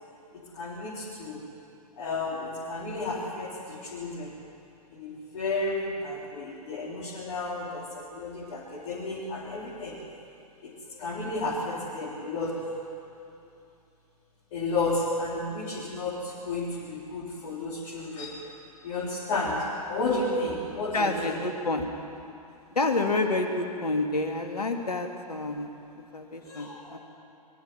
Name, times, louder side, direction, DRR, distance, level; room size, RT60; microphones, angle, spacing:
voice 1, 0.5-1.4 2.0-4.3 4.9-10.0 10.6-12.6 14.5-18.4 18.8-21.4 26.5-27.0, left 2 dB, 50° left, -6 dB, 4.1 m, -32 dB
voice 2, 20.9-21.9 22.7-27.0, left 2 dB, 80° left, 3 dB, 2.6 m, -29 dB
23.0 x 14.5 x 9.6 m, 2.7 s
figure-of-eight pair, 115°, 20 cm